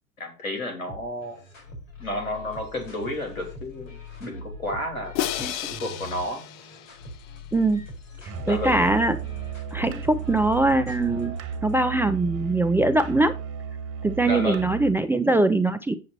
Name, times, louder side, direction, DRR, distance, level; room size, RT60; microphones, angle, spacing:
voice 1, 0.2-1.4 2.0-3.9 4.2-6.4 8.4-8.8 14.2-14.7, left 1 dB, 90° left, 4 dB, 3.4 m, -31 dB
sound 1, 0.9-11.7, left 2 dB, 70° left, 3.8 m, -42 dB
Crash cymbal, 5.2-7.4, left 11 dB, 40° left, 0.8 m, -32 dB
voice 2, 7.5-7.8 8.5-9.2 9.7-11.3 11.6-13.3 14.0-15.9, right 2 dB, 5° right, 8 dB, 0.4 m, -22 dB
Musical instrument, 8.3-15.0, right 9 dB, 35° right, 1.4 m, -34 dB
7.7 x 7.5 x 4.0 m, 0.33 s
hypercardioid pair, 95°, 41 cm